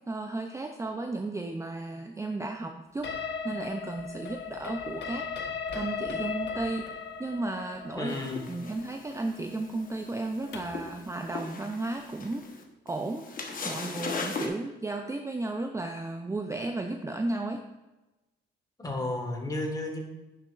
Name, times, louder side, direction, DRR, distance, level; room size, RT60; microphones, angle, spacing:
voice 1, 0.1-5.2 5.7-6.9 7.2-8.2 8.5-12.4 12.9-13.4 13.6-17.6, right 2 dB, 15° right, 4 dB, 0.5 m, -34 dB
sound 1, 3.0-10.9, left 5 dB, 65° left, 1.0 m, -37 dB
voice 2, 8.0-8.5 18.8-20.0, left 2 dB, 20° left, 2 dB, 1.5 m, -32 dB
sound 2, 8.1-14.5, left 4 dB, 45° left, 1.1 m, -39 dB
10.0 x 6.6 x 2.5 m, 1.1 s
cardioid pair, 90°, 20 cm